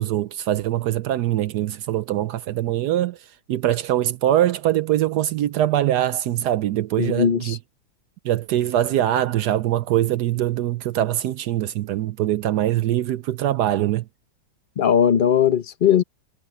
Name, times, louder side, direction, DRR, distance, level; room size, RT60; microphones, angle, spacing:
voice 1, 0.0-3.2 3.5-7.6 8.2-14.1, right 12 dB, 70° right, 1.1 m, -22 dB
voice 2, 7.0-7.6 14.8-16.0, left 8 dB, 70° left, 0.5 m, -18 dB
omnidirectional pair, 2.0 m